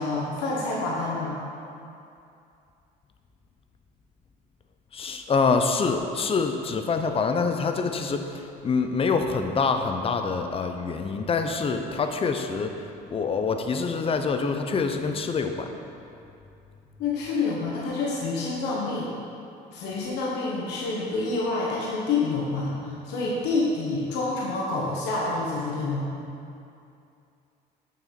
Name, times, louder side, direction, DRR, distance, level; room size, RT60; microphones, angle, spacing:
voice 1, 0.0-1.4 17.0-19.1 19.7-26.1, left 3 dB, 90° left, -4 dB, 1.3 m, -28 dB
voice 2, 4.9-12.7 13.1-15.7, left 4 dB, 35° left, 6 dB, 0.7 m, -26 dB
7.4 x 6.1 x 5.3 m, 2.6 s
cardioid pair, 110°, 17 cm